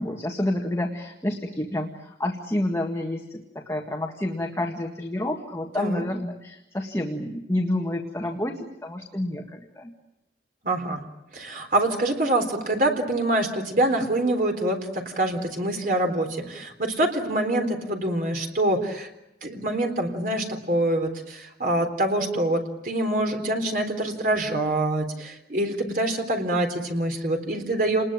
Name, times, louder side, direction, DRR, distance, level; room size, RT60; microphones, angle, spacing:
voice 1, 0.0-9.9, left 1 dB, 15° left, 1 dB, 1.8 m, -29 dB
voice 2, 10.6-11.0 11.3-19.1 19.4-28.0, right 1 dB, 50° right, 4 dB, 3.9 m, -25 dB
29.5 x 20.5 x 9.0 m, 0.89 s
head